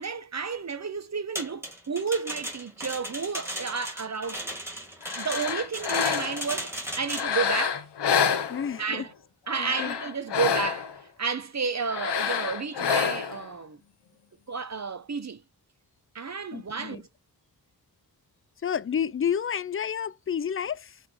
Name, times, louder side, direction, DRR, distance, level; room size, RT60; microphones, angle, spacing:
voice 1, 0.0-4.6 5.2-7.8 8.8-9.1 9.5-13.8 14.5-15.4 16.1-17.0, right 5 dB, 45° right, 0.9 m, -32 dB
sound 1, 1.4-7.4, equal, 5° right, 2.1 m, -36 dB
sound 2, 5.0-6.5 7.1-9.0 9.5-11.0 11.9-13.5, left 7 dB, 90° left, 0.8 m, -28 dB
voice 2, 8.5-9.0 9.6-10.0 16.5-17.0 18.6-21.0, left 8 dB, 35° left, 0.4 m, -30 dB
6.6 x 3.6 x 5.0 m
wide cardioid pair, 65°, 40 cm